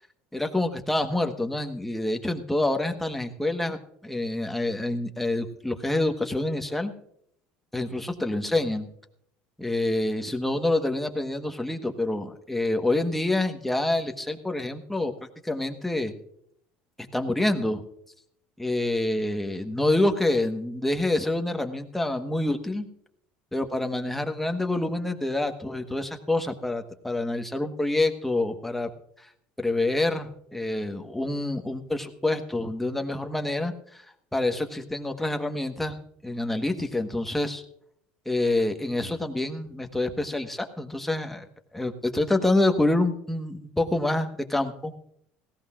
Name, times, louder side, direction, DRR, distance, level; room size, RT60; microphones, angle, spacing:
voice 1, 0.3-6.9 7.7-8.9 9.6-16.1 17.1-17.8 18.6-22.9 23.5-28.9 29.2-29.3 29.6-34.0 34.3-36.0 36.2-37.6 38.2-41.4 41.7-44.9, left 2 dB, 5° left, 5 dB, 1.3 m, -27 dB
18.0 x 16.5 x 2.5 m, 0.71 s
supercardioid pair, 110°, 4 cm